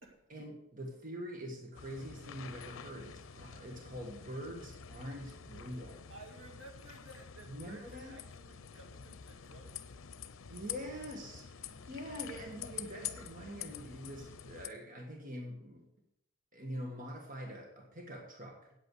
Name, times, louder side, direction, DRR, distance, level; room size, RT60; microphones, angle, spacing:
voice 1, 0.3-6.0 7.5-8.2 10.5-15.8 16.5-18.7, equal, 40° right, 1 dB, 1.5 m, -44 dB
sound 1, 1.7-14.7, left 8 dB, 85° left, 0.6 m, -47 dB
voice 2, 6.1-9.9 11.7-11.9, right 2 dB, 70° right, 2 dB, 2.1 m, -55 dB
8.5 x 8.3 x 6.4 m, 0.81 s
head